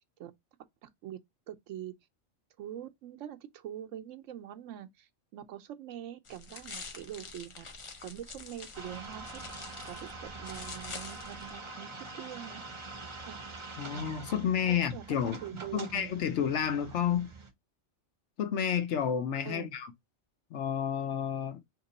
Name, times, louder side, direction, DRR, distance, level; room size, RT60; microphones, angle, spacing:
voice 1, 0.8-1.2 1.5-1.9 2.6-9.4 9.8-11.9 12.1-12.6 13.3-13.4 14.7-16.1 19.5-19.7, right 11 dB, 90° right, 1.0 m, -44 dB
sound 1, 6.2-11.5, left 4 dB, 40° left, 0.4 m, -46 dB
sound 2, 8.7-17.5, right 3 dB, 35° right, 0.5 m, -45 dB
voice 2, 13.8-15.4 15.7-17.3 18.4-19.9 20.5-21.6, left 8 dB, 75° left, 1.0 m, -30 dB
3.0 x 2.9 x 3.9 m
omnidirectional pair, 1.2 m